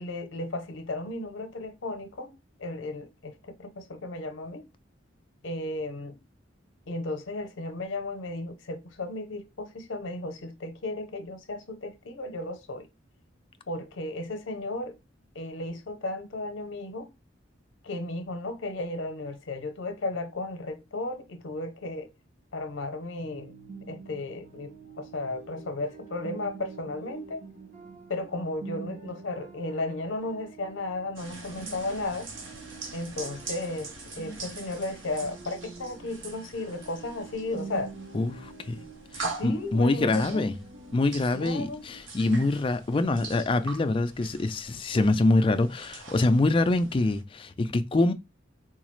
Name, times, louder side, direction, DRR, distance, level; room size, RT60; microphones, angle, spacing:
voice 1, 0.0-4.7 5.4-6.2 6.9-12.9 13.7-15.0 15.3-17.1 17.8-22.1 22.5-23.5 23.9-27.4 28.1-32.3 32.9-37.9 39.2-40.4 41.3-41.8, left 2 dB, 80° left, 0.7 m, -34 dB
sound 1, 23.2-42.0, right 4 dB, 40° right, 0.8 m, -46 dB
sound 2, 31.2-47.2, right 3 dB, 80° right, 0.7 m, -43 dB
voice 2, 38.1-38.8 39.1-40.6 40.9-48.1, left 2 dB, 25° left, 0.3 m, -25 dB
3.9 x 2.3 x 3.1 m
head